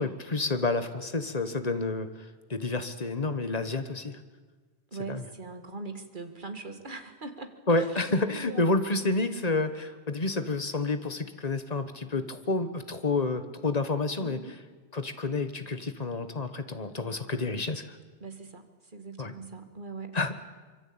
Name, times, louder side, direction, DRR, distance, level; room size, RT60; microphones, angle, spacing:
voice 1, 0.0-2.1 2.5-4.2 5.1-5.2 7.7-14.4 14.9-18.0 19.2-19.3 20.1-20.3, left 3 dB, 40° left, 10 dB, 1.5 m, -29 dB
voice 2, 4.9-8.0 8.4-8.8 14.2-14.6 18.2-20.2, right 3 dB, 50° right, 7 dB, 2.2 m, -41 dB
25.0 x 23.5 x 8.8 m, 1.4 s
omnidirectional pair, 1.1 m